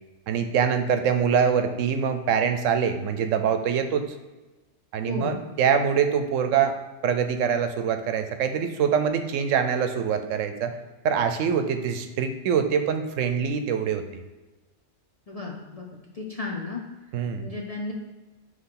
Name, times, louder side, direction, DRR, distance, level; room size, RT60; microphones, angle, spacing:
voice 1, 0.3-4.0 4.9-6.7 7.0-10.7 11.0-14.0 17.1-17.5, right 7 dB, 75° right, 8 dB, 0.9 m, -24 dB
voice 2, 5.1-5.4 15.3-15.8 16.1-16.8 17.4-17.9, left 3 dB, 40° left, -2 dB, 0.5 m, -33 dB
5.7 x 3.2 x 5.7 m, 1.2 s
omnidirectional pair, 1.4 m